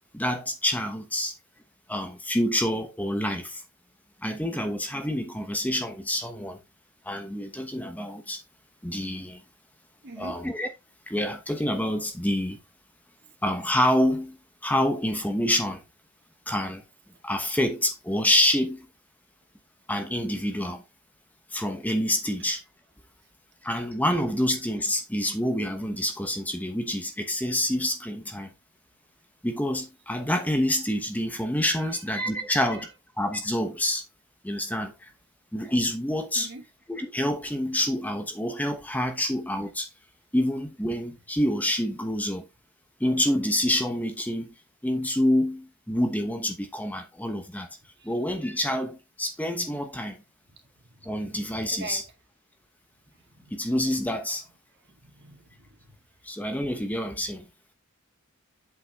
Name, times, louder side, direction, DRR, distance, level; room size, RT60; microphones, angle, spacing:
voice 1, 0.1-1.3 1.9-3.6 4.2-6.6 7.0-8.4 8.8-9.4 10.2-10.7 11.1-12.6 13.4-14.4 14.6-15.8 16.5-16.8 17.2-18.9 19.9-20.8 21.5-22.6 23.6-28.5 29.4-32.9 33.2-34.0 34.4-35.1 35.5-36.5 36.9-39.9 40.3-42.4 43.0-44.5 44.8-47.7 48.0-50.2 51.0-52.0 53.5-54.4 56.2-57.4, left 1 dB, 5° left, 1.0 m, -27 dB
voice 2, 10.0-10.4 31.7-32.0 32.7-32.8 36.4-36.6 48.0-48.1 51.1-51.2 51.7-52.0 53.5-53.6 54.9-55.9, right 3 dB, 50° right, 2.0 m, -43 dB
8.1 x 5.9 x 3.5 m
head